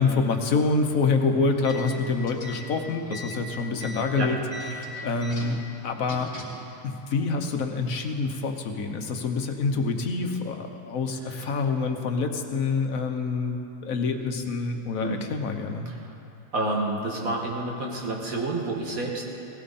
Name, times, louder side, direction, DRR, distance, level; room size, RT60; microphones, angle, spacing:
voice 1, 0.0-4.4 4.7-5.6 5.8-6.3 6.8-15.9, left 4 dB, 75° left, 5 dB, 1.5 m, -26 dB
sound 1, 1.5-6.7, equal, 45° left, 2.5 m, -39 dB
voice 2, 16.5-19.2, right 2 dB, 90° right, -1 dB, 2.4 m, -29 dB
18.5 x 16.5 x 4.2 m, 2.8 s
omnidirectional pair, 1.4 m